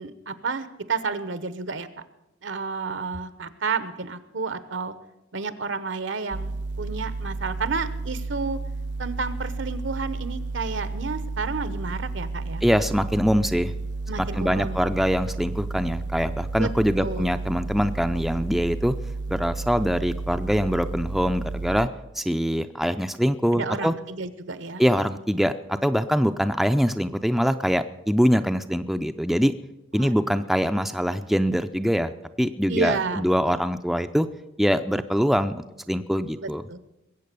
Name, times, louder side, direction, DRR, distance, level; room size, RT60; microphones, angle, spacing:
voice 1, 0.0-1.9 2.4-4.9 5.3-8.6 9.0-12.6 14.1-14.8 16.6-16.7 17.0-17.3 23.5-24.8 30.0-30.4 32.7-33.6 36.3-36.8, right 4 dB, 75° right, 13 dB, 1.0 m, -31 dB
sound 1, 6.3-21.9, right 3 dB, 60° right, 0.5 m, -32 dB
voice 2, 12.6-13.7 14.2-18.9 19.3-21.9 22.2-23.9 24.8-29.5 29.9-32.1 32.4-34.3 34.6-36.6, equal, ahead, 8 dB, 0.4 m, -23 dB
21.0 x 8.3 x 6.8 m, 0.92 s
head